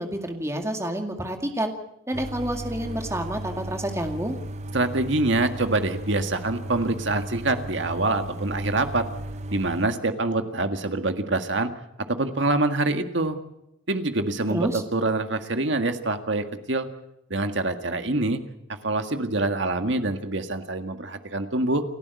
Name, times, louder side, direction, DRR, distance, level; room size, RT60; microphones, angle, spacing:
voice 1, 0.0-1.7 2.1-4.4 14.5-14.8, right 1 dB, 15° right, 4 dB, 2.1 m, -29 dB
sound 1, 2.1-9.9, right 1 dB, 35° right, 0.7 m, -35 dB
voice 2, 4.7-9.0 9.5-11.7 12.1-13.4 13.9-16.9 17.3-18.4 18.8-21.8, right 2 dB, 70° right, 7 dB, 1.8 m, -25 dB
29.5 x 12.0 x 8.2 m, 0.86 s
head